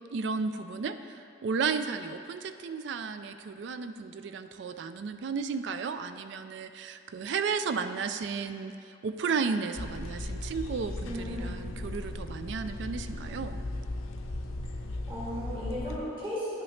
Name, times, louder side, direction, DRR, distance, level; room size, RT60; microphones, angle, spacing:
voice 1, 0.1-13.6, right 5 dB, 55° right, 10 dB, 0.3 m, -33 dB
sound 1, 9.7-16.0, left 2 dB, 85° left, 0.6 m, -37 dB
voice 2, 11.0-11.5 15.1-16.6, left 1 dB, 25° right, -9 dB, 1.6 m, -36 dB
10.5 x 5.8 x 3.2 m, 2.5 s
head